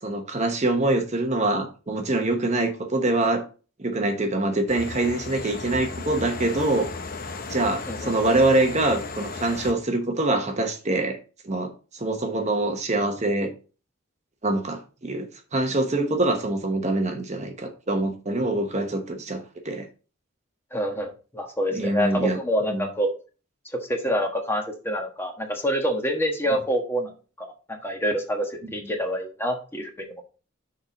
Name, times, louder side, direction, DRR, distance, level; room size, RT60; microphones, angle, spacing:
voice 1, 0.0-3.4 3.8-6.9 7.5-11.2 11.4-13.5 14.4-19.9 21.7-22.4 22.7-22.9, right 2 dB, 35° right, 5 dB, 1.0 m, -24 dB
sound 1, 4.7-9.7, left 3 dB, 45° left, 0.9 m, -35 dB
voice 2, 7.9-8.3 20.7-23.1 23.9-27.1 27.4-30.2, equal, 10° left, 3 dB, 1.3 m, -27 dB
6.5 x 4.5 x 5.2 m, 0.35 s
head